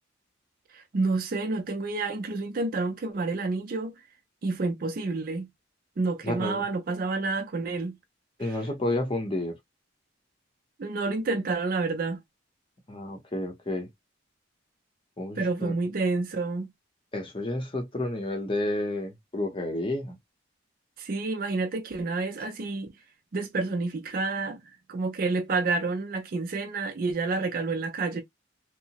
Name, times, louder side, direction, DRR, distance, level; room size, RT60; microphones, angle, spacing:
voice 1, 0.7-4.0 4.4-5.5 6.0-8.0 8.5-8.6 10.8-12.2 15.4-16.7 21.0-22.9 23.3-24.6 24.9-28.2, right 3 dB, 45° right, 0.4 m, -29 dB
voice 2, 6.2-6.6 8.4-9.5 12.9-13.9 15.2-15.7 17.1-20.2, left 1 dB, 25° left, 0.7 m, -30 dB
2.7 x 2.0 x 2.8 m
head